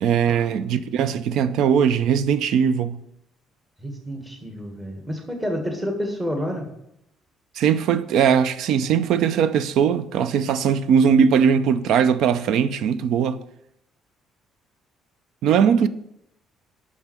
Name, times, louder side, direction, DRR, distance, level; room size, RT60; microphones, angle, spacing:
voice 1, 0.0-3.0 7.6-13.4 15.4-15.9, right 7 dB, 75° right, 0.4 m, -20 dB
voice 2, 3.8-6.7, equal, 15° right, 1.6 m, -29 dB
6.3 x 5.4 x 6.0 m
cardioid pair, 95°, 0 cm